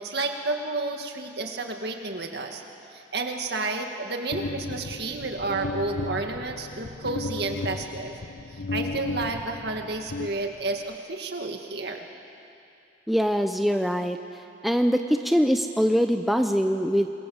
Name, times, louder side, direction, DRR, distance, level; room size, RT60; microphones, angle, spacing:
voice 1, 0.0-2.6 2.9-8.1 8.5-12.1, right 3 dB, 60° right, 3 dB, 2.1 m, -31 dB
sound 1, 4.3-10.9, left 3 dB, 80° left, 0.9 m, -35 dB
voice 2, 13.1-14.2 14.6-17.1, equal, ahead, 6 dB, 0.6 m, -23 dB
26.5 x 22.5 x 7.2 m, 2.6 s
head